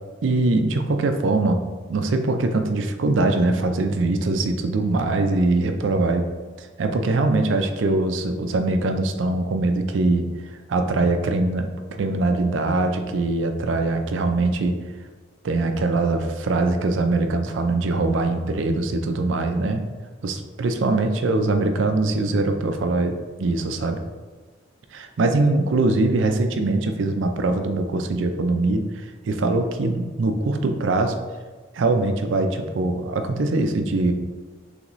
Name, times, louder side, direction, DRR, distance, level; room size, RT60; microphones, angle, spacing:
voice 1, 0.2-1.6 1.9-6.3 6.6-10.3 10.7-14.8 15.4-19.8 20.2-24.0 24.9-28.9 29.3-31.2 31.7-34.1, right 2 dB, 90° right, 6 dB, 0.4 m, -22 dB
3.9 x 3.4 x 3.0 m, 1.3 s
head